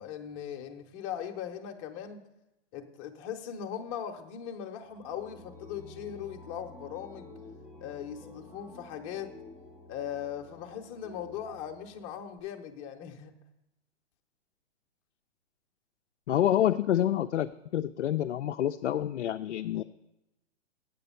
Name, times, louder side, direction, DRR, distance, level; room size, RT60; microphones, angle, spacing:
voice 1, 0.0-2.2 2.7-7.4 7.8-9.3 9.9-13.4, left 9 dB, 25° left, 4 dB, 0.8 m, -39 dB
sound 1, 4.8-12.4, left 2 dB, 5° right, 0.5 m, -51 dB
voice 2, 16.3-19.8, left 11 dB, 75° left, 8 dB, 0.5 m, -28 dB
8.3 x 6.8 x 5.6 m, 0.92 s
hypercardioid pair, 140°, 35 cm